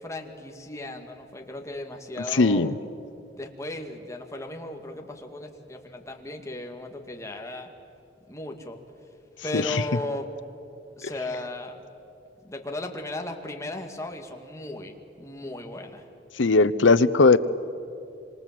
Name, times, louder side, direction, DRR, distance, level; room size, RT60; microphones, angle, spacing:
voice 1, 0.0-2.7 3.3-7.7 8.3-8.8 9.4-10.2 11.0-11.8 12.4-16.0, left 1 dB, 15° left, 3 dB, 2.2 m, -36 dB
voice 2, 2.3-2.7 9.5-9.8 16.4-17.4, left 3 dB, 90° left, 14 dB, 0.9 m, -19 dB
27.5 x 26.0 x 7.7 m, 2.7 s
head